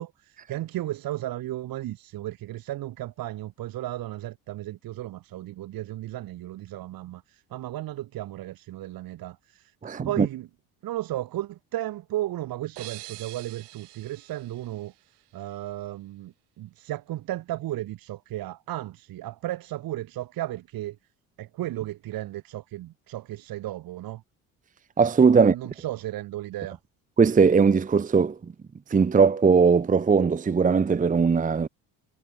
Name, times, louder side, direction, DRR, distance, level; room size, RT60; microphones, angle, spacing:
voice 1, 0.0-10.5 10.8-14.9 15.3-21.0 21.4-24.2 25.3-26.8, right 14 dB, 55° right, 1.2 m, -34 dB
voice 2, 9.8-10.3 25.0-25.5 27.2-28.4 28.9-31.7, right 5 dB, 20° right, 0.8 m, -19 dB
sound 1, 12.8-15.5, right 22 dB, 75° right, 2.9 m, -45 dB
supercardioid pair, 70°, 41 cm